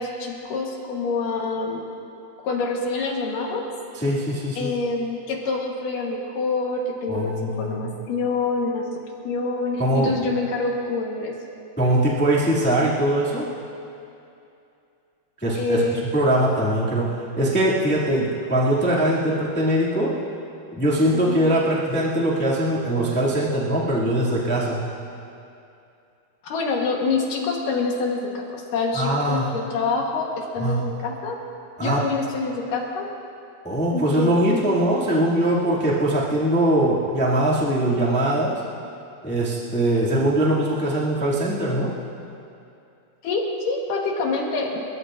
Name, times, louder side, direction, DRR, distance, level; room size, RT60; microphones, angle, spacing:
voice 1, 0.0-1.9 2.4-3.7 4.5-8.9 9.2-11.4 15.6-16.1 21.1-21.5 26.4-31.4 31.8-33.1 33.9-34.8 43.2-44.8, left 3 dB, 65° left, 0 dB, 2.7 m, -26 dB
voice 2, 3.9-4.7 7.1-7.9 9.8-10.2 11.8-13.5 15.4-15.8 16.1-20.1 20.7-24.8 28.9-29.5 30.6-30.8 31.8-32.0 33.6-38.6 39.2-41.9, right 1 dB, 5° left, -7 dB, 1.2 m, -21 dB
30.0 x 14.0 x 2.6 m, 2.6 s
omnidirectional pair, 4.4 m